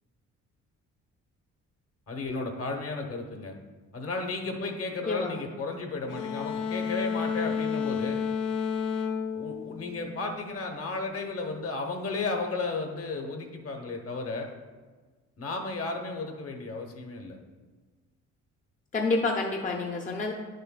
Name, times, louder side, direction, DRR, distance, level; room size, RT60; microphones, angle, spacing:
voice 1, 2.1-3.5 3.9-8.2 9.3-14.5 15.4-17.4, left 3 dB, 50° left, 3 dB, 1.0 m, -34 dB
voice 2, 5.1-5.4 18.9-20.3, left 3 dB, 25° left, 1 dB, 0.6 m, -28 dB
sound 1, 6.1-10.5, left 6 dB, 85° left, 0.7 m, -31 dB
9.6 x 6.6 x 2.2 m, 1.4 s
cardioid pair, 90°, 30 cm